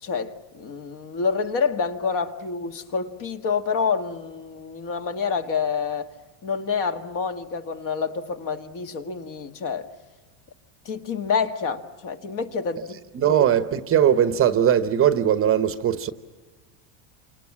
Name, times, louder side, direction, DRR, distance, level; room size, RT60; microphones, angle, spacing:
voice 1, 0.0-6.1 6.4-9.9 10.9-12.9 13.2-13.4, left 5 dB, 40° left, 1.8 m, -27 dB
voice 2, 13.1-16.1, right 9 dB, 30° right, 0.9 m, -20 dB
28.0 x 26.0 x 7.4 m
supercardioid pair, 140°, 47 cm